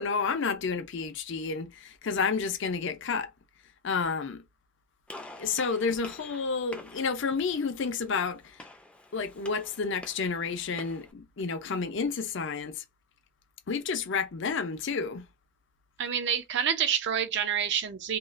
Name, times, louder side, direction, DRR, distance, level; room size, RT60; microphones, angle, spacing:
voice 1, 0.0-3.3 3.8-4.4 5.4-8.5 9.1-12.8 13.7-15.2, left 5 dB, 60° left, 0.5 m, -30 dB
Gunshot gunfire, 5.1-11.1, left 1 dB, 5° left, 0.4 m, -48 dB
voice 2, 16.0-18.2, right 8 dB, 55° right, 0.5 m, -28 dB
3.0 x 2.3 x 2.4 m
head